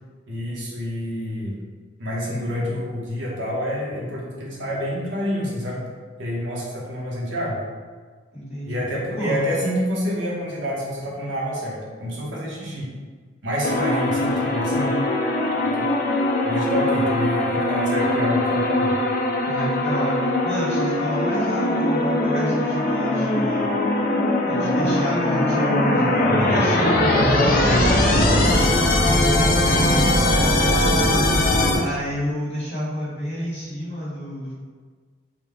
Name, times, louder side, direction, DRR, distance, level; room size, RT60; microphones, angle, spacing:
voice 1, 0.3-1.5 2.0-5.8 6.2-7.6 8.6-12.9 13.4-14.9 15.7-15.9 16.4-19.0 29.7-30.1, equal, 75° right, -5 dB, 0.9 m, -27 dB
voice 2, 8.3-8.8 9.1-9.4 19.4-23.7 24.4-26.9 27.4-31.1 31.7-34.5, equal, 35° left, -8 dB, 1.4 m, -30 dB
sound 1, 13.6-31.8, left 1 dB, 50° left, 0.5 m, -20 dB
3.7 x 2.2 x 3.5 m, 1.5 s
head